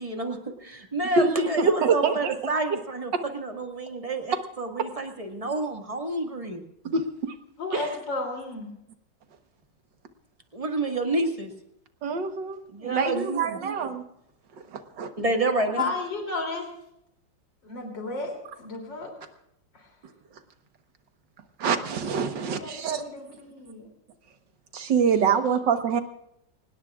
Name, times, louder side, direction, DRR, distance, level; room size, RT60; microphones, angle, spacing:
voice 1, 0.0-6.6 10.5-11.5 12.7-13.6 15.2-15.9, right 2 dB, 20° right, 3 dB, 1.9 m, -29 dB
voice 2, 1.2-2.3 3.1-3.2 6.9-7.0 7.7-7.9 10.9-11.0 12.0-14.0 14.7-15.1 21.6-23.0 24.7-26.0, right 5 dB, 80° right, 7 dB, 2.0 m, -25 dB
voice 3, 7.6-8.7 15.8-16.7 17.6-19.1 19.7-19.9 22.5-23.9, left 3 dB, 85° left, 1 dB, 3.8 m, -33 dB
24.5 x 19.5 x 2.4 m, 0.79 s
omnidirectional pair, 1.9 m